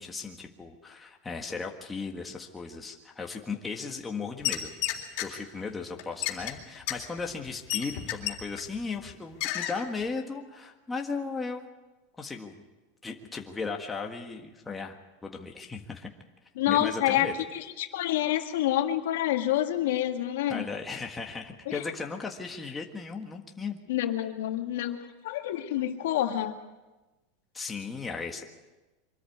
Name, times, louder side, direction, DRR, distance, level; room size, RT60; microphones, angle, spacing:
voice 1, 0.0-4.7 5.2-11.7 12.2-12.6 13.0-16.1 16.7-17.3 20.5-23.8 27.5-28.4, left 4 dB, 10° left, 2 dB, 1.6 m, -36 dB
sound 1, 4.4-5.3 6.0-8.7 9.0-9.1 9.4-9.8 10.2-10.3, left 14 dB, 50° left, 3.7 m, -31 dB
voice 2, 16.6-20.6 21.7-21.8 23.9-25.0 25.2-26.6, left 12 dB, 80° left, 5 dB, 2.0 m, -28 dB
24.0 x 13.5 x 9.4 m, 1.1 s
supercardioid pair, 160°, 0 cm